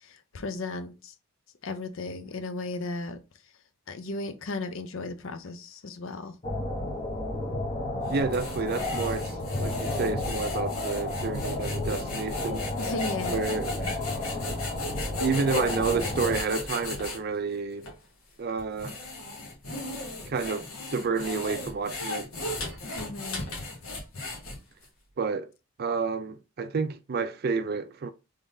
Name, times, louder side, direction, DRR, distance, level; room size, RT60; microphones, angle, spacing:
voice 1, 0.3-1.1 1.6-3.2 3.9-6.3 12.8-13.5 23.0-23.4, left 3 dB, 65° left, 0.6 m, -35 dB
sound 1, 6.4-16.4, left 2 dB, 30° left, 0.8 m, -32 dB
sound 2, 8.1-17.2 17.8-17.9 18.6-24.8, left 2 dB, 85° left, 1.5 m, -36 dB
voice 2, 8.1-12.7 13.3-13.9 15.2-17.9 18.4-19.0 20.3-22.3 25.2-25.5 25.8-28.1, right 4 dB, 45° right, 0.4 m, -30 dB
3.6 x 3.6 x 2.6 m
head